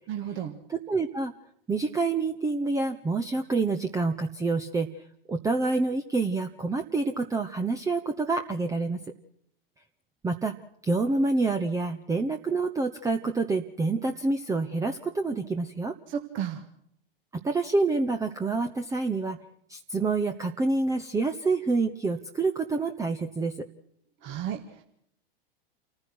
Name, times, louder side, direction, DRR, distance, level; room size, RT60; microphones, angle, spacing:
voice 1, 0.1-0.5 16.1-16.6 24.2-24.8, right 9 dB, 40° right, 4 dB, 2.0 m, -33 dB
voice 2, 0.7-1.3 1.7-4.9 5.3-9.0 10.2-10.6 10.8-15.9 17.4-19.4 19.7-23.5, right 3 dB, 10° right, 8 dB, 1.0 m, -27 dB
28.5 x 15.0 x 6.2 m, 0.71 s
hypercardioid pair, 105°, 30 cm